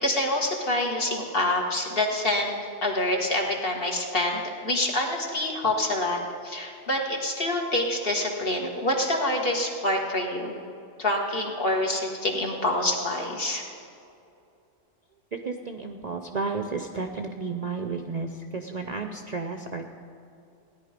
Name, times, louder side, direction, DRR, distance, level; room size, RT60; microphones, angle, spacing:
voice 1, 0.0-10.6 11.0-13.6, left 1 dB, 50° left, 0 dB, 1.8 m, -26 dB
voice 2, 15.3-19.9, right 4 dB, 45° right, 4 dB, 0.6 m, -32 dB
17.0 x 10.5 x 5.1 m, 2.6 s
omnidirectional pair, 1.3 m